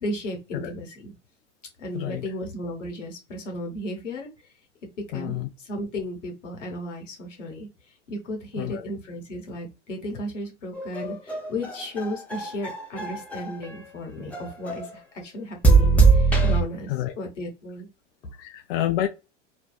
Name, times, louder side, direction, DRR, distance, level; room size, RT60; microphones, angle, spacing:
voice 1, 0.0-1.1 1.8-4.3 5.0-7.7 8.1-17.9 18.2-18.3, left 1 dB, 75° left, 1.1 m, -34 dB
voice 2, 1.9-2.2 5.1-5.5 8.6-8.9 16.9-17.1 18.4-19.1, left 13 dB, 50° left, 0.5 m, -28 dB
sound 1, 10.7-13.8 14.3-14.9 15.6-16.6, right 4 dB, 5° left, 0.7 m, -21 dB
2.6 x 2.2 x 2.2 m
figure-of-eight pair, 85°, 37 cm